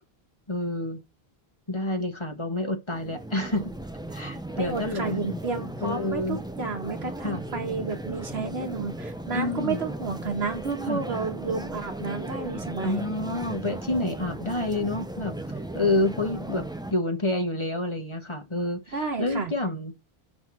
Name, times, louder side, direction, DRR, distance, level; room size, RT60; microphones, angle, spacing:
voice 1, 0.5-1.0 1.7-3.7 4.1-5.4 5.8-6.4 7.2-7.4 9.3-9.8 10.9-11.0 12.8-15.3 15.7-16.6 16.9-19.9, left 2 dB, 30° left, 1.1 m, -28 dB
sound 1, 2.9-16.9, right 1 dB, 5° right, 0.5 m, -36 dB
voice 2, 4.6-13.0 18.9-19.5, right 4 dB, 85° right, 1.8 m, -31 dB
5.9 x 4.3 x 6.0 m
omnidirectional pair, 1.0 m